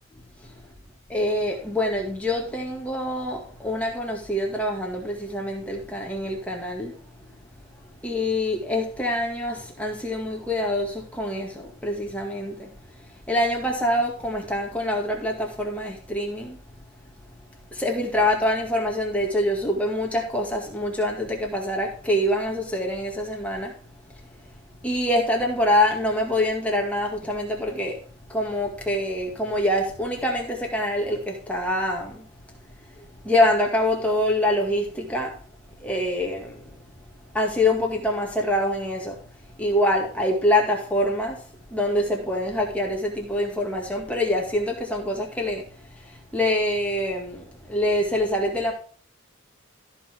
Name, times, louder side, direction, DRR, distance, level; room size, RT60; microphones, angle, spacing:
voice 1, 1.1-7.0 8.0-12.7 12.9-16.6 17.7-23.7 24.1-24.5 24.8-28.0 28.3-32.2 32.9-35.4 35.8-36.7 37.3-39.2 39.6-41.4 41.7-45.6 45.9-48.7, left 1 dB, 5° left, 2.0 m, -25 dB
14.0 x 5.7 x 4.6 m
head